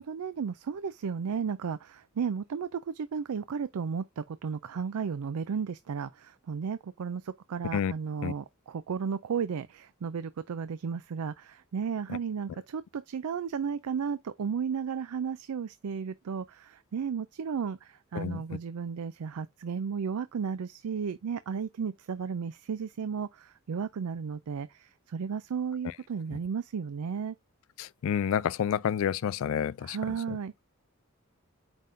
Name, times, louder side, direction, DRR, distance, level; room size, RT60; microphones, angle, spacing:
voice 1, 0.0-27.4 29.8-30.5, right 6 dB, 90° right, 0.4 m, -34 dB
voice 2, 27.8-30.0, left 8 dB, 65° left, 0.3 m, -29 dB
7.5 x 5.3 x 2.6 m
head